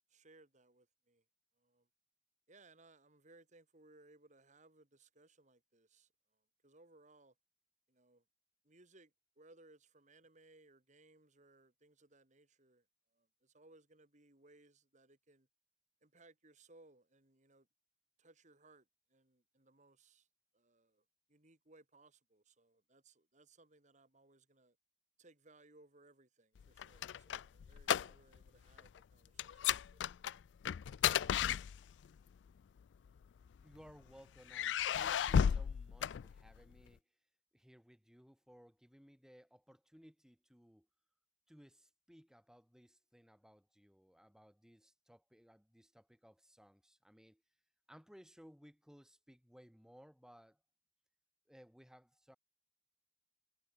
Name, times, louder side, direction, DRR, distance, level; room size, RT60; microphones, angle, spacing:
voice 1, 0.1-1.2 1.6-1.9 2.5-7.3 7.9-8.2 8.6-12.9 13.1-15.5 16.0-17.7 18.2-20.3 20.5-24.8 25.2-30.4 31.1-31.8, right 2 dB, 45° right, 3.4 m, -65 dB
sound 1, 26.6-28.5 28.7-29.0 29.4-32.2 33.1-33.9 34.5-36.8, left 8 dB, 80° left, 0.3 m, -34 dB
voice 2, 33.6-37.0 37.5-40.9 41.5-47.4 47.9-50.6 51.5-52.4, equal, 5° right, 7.3 m, -61 dB
head